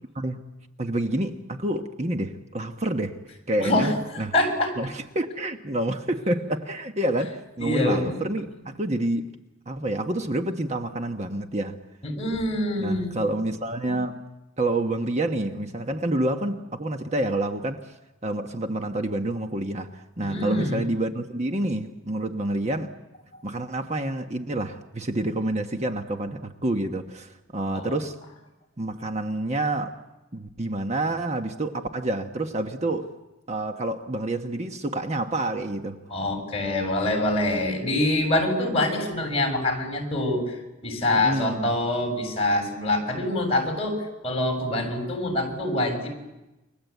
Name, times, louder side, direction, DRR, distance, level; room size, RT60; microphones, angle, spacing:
voice 1, 0.8-3.2 3.5-4.3 4.8-9.3 9.7-11.8 12.8-14.2 14.6-17.9 18.2-22.9 23.4-28.1 28.8-29.9 30.3-33.1 33.5-36.0 41.1-41.7, right 1 dB, 35° right, 5 dB, 1.2 m, -28 dB
voice 2, 3.6-3.9 4.3-4.8 7.6-8.1 12.0-13.1 20.2-20.8 27.7-27.9 36.1-46.1, left 1 dB, 30° left, 3 dB, 6.7 m, -25 dB
29.5 x 24.0 x 8.2 m, 1.0 s
head